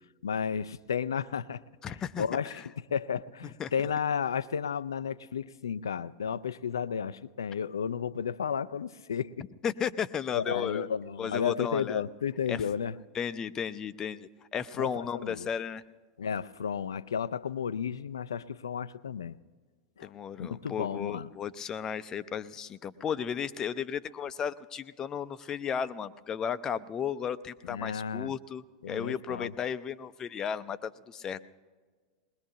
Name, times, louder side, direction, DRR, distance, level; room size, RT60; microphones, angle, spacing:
voice 1, 0.2-1.6 2.2-2.6 2.9-9.5 10.3-12.9 14.8-15.5 16.2-19.4 20.0-20.1 20.4-21.3 27.6-28.3 28.8-29.5, left 7 dB, 70° left, 15 dB, 0.5 m, -33 dB
voice 2, 1.8-2.7 3.4-3.7 9.6-10.9 11.2-12.0 12.5-12.6 13.1-15.8 20.0-31.4, left 7 dB, 25° left, 14 dB, 0.6 m, -34 dB
21.5 x 20.5 x 2.9 m, 1.5 s
figure-of-eight pair, 90°, 2 cm